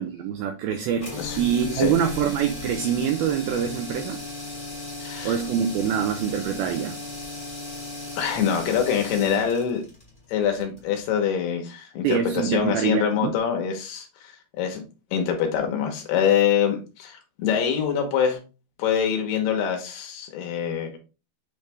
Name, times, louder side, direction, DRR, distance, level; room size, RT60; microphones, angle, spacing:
voice 1, 0.0-4.2 5.2-7.0 12.0-13.3, right 8 dB, 85° right, 2.1 m, -25 dB
sound 1, 1.0-11.1, left 2 dB, 20° left, 0.9 m, -36 dB
voice 2, 5.0-5.4 8.2-9.8 10.3-14.3 14.6-14.8 15.1-18.4 18.8-21.0, left 8 dB, 75° left, 3.0 m, -24 dB
8.9 x 3.2 x 3.4 m
omnidirectional pair, 4.9 m